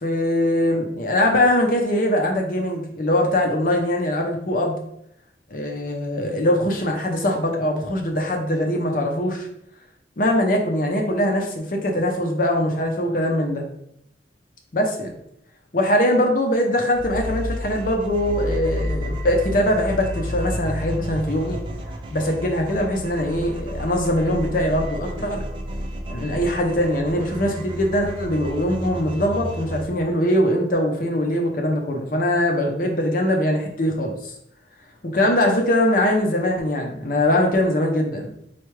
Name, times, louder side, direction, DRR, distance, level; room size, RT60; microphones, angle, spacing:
voice 1, 0.0-4.8 5.5-9.5 10.2-13.7 14.7-15.1 15.7-21.6 22.1-25.4 26.1-34.3 35.0-38.3, left 1 dB, 50° left, 2 dB, 0.6 m, -22 dB
sound 1, 16.9-29.8, left 1 dB, 30° right, 0.4 m, -31 dB
4.5 x 2.4 x 3.1 m, 0.75 s
head